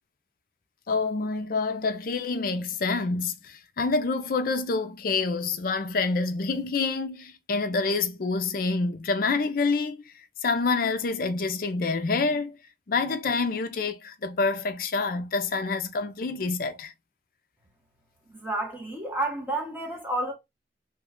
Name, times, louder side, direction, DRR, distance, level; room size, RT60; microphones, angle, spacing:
voice 1, 0.9-10.1 10.4-12.6 12.9-16.9, left 4 dB, 50° left, 0.4 m, -27 dB
voice 2, 18.3-20.3, right 1 dB, 10° right, 1.0 m, -30 dB
3.0 x 2.2 x 3.5 m
head